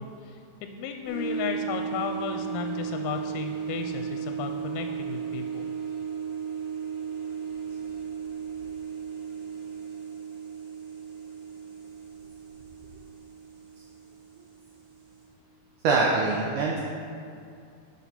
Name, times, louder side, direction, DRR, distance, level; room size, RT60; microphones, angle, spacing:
voice 1, 0.0-5.7, left 7 dB, 85° left, 5 dB, 2.5 m, -34 dB
sound 1, 1.1-15.3, right 7 dB, 55° right, 1.7 m, -36 dB
voice 2, 15.8-16.8, right 3 dB, 85° right, -3 dB, 1.7 m, -23 dB
8.7 x 5.8 x 4.2 m, 2.4 s
omnidirectional pair, 4.5 m